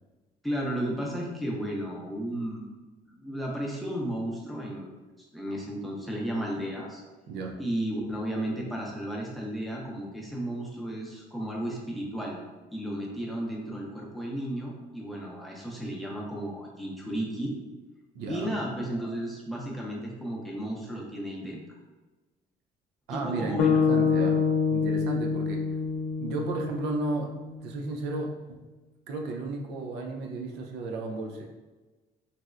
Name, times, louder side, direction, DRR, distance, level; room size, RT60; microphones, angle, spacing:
voice 1, 0.4-2.7 3.1-4.9 5.2-7.0 7.6-12.4 12.7-17.6 18.3-21.6 23.1-23.8, right 1 dB, ahead, -2 dB, 0.6 m, -33 dB
voice 2, 18.1-18.5 23.1-25.6 26.2-27.3 27.6-28.3 29.1-31.4, right 2 dB, 85° right, 2 dB, 0.5 m, -33 dB
sound 1, 23.6-27.8, left 5 dB, 80° left, 0.4 m, -26 dB
4.0 x 2.1 x 2.3 m, 1.2 s
cardioid pair, 110°, 17 cm